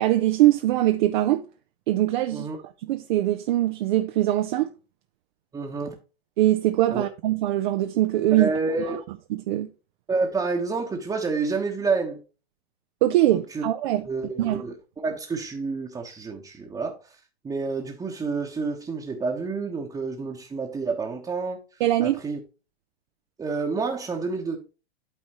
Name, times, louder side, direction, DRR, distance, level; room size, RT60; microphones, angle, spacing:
voice 1, 0.0-1.4 1.9-2.5 2.8-4.7 6.4-8.5 8.9-9.0 9.3-9.7 13.0-14.0 14.4-14.6 21.8-22.2, right 14 dB, 50° right, 0.7 m, -22 dB
voice 2, 5.5-6.0 6.9-7.0 8.3-9.0 10.1-12.2 13.3-13.6 14.0-17.2 17.4-22.4 23.4-24.6, right 4 dB, 10° right, 1.2 m, -29 dB
12.5 x 4.2 x 3.0 m
figure-of-eight pair, 105°, 31 cm